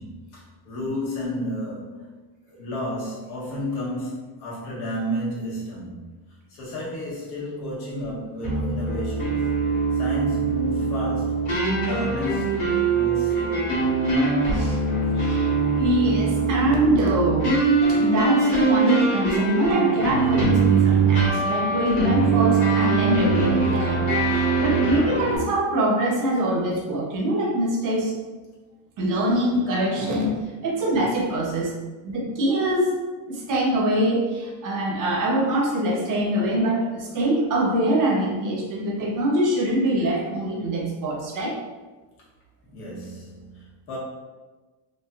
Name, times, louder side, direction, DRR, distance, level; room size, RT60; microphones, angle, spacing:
voice 1, 0.0-2.0 2.4-6.1 6.5-9.5 9.9-11.5 11.8-13.7 29.9-30.6 31.2-31.5 42.7-44.0, left 1 dB, 85° left, -6 dB, 1.3 m, -32 dB
sound 1, 8.4-25.4, right 4 dB, 40° left, 1.3 m, -22 dB
voice 2, 15.2-17.6 17.9-24.0 24.3-28.2 29.0-30.4 30.6-31.7 32.0-41.6, right 1 dB, 40° right, -2 dB, 0.6 m, -24 dB
3.0 x 2.6 x 2.3 m, 1.2 s
cardioid pair, 155°, 48 cm